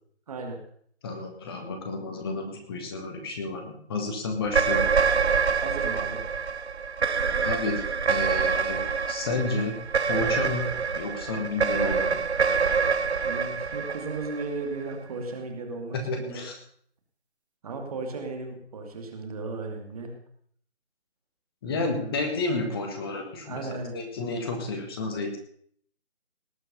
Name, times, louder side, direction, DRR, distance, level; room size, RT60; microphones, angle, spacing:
voice 1, 0.3-0.6 5.6-6.2 13.2-16.4 17.6-20.1 21.6-22.2 23.4-23.9, right 3 dB, 35° right, 3 dB, 2.5 m, -35 dB
voice 2, 1.0-4.9 7.4-8.8 9.1-12.2 15.9-16.6 21.6-25.4, left 3 dB, 20° left, 4 dB, 1.7 m, -31 dB
sound 1, 4.4-14.9, right 5 dB, 70° right, 1.0 m, -26 dB
18.5 x 6.3 x 6.7 m, 0.63 s
figure-of-eight pair, 155°, 34 cm